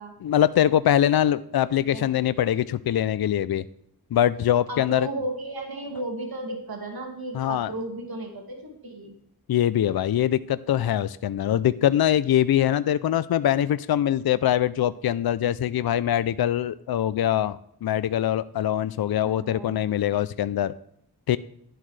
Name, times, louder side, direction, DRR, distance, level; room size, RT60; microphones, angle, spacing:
voice 1, 0.2-3.6 4.1-5.1 7.3-7.7 9.5-20.7 21.3-21.4, left 11 dB, 70° left, 15 dB, 0.5 m, -23 dB
voice 2, 1.5-2.1 4.7-9.1 19.2-19.8, right 1 dB, 70° right, 1 dB, 2.4 m, -34 dB
11.0 x 11.0 x 3.3 m, 0.76 s
wide cardioid pair, 65°, 38 cm